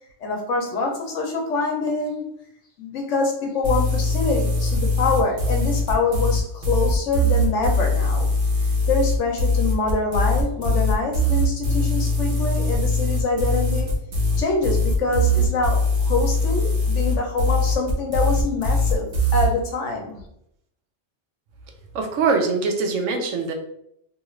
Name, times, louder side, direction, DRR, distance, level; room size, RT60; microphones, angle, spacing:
voice 1, 0.2-2.3 2.8-8.3 8.9-13.9 14.4-20.2, left 3 dB, 75° left, 2 dB, 1.0 m, -25 dB
sound 1, 3.6-19.5, left 1 dB, 50° right, 1.0 m, -21 dB
voice 2, 21.9-23.5, right 4 dB, 80° right, 4 dB, 1.0 m, -22 dB
2.8 x 2.4 x 3.0 m, 0.75 s
omnidirectional pair, 1.3 m